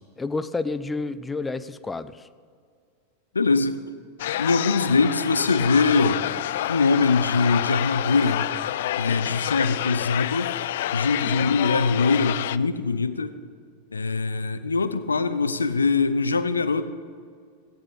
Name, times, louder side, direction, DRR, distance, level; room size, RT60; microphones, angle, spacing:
voice 1, 0.2-2.2, left 3 dB, 10° left, 14 dB, 0.6 m, -30 dB
voice 2, 3.3-3.8 4.4-6.2 6.7-8.5 9.0-10.6 10.9-13.3 13.9-16.8, left 4 dB, 75° left, 13 dB, 0.8 m, -22 dB
sound 1, 4.2-12.6, left 13 dB, 55° left, 0.4 m, -28 dB
16.5 x 15.5 x 4.1 m, 2.2 s
figure-of-eight pair, 90°, 0 cm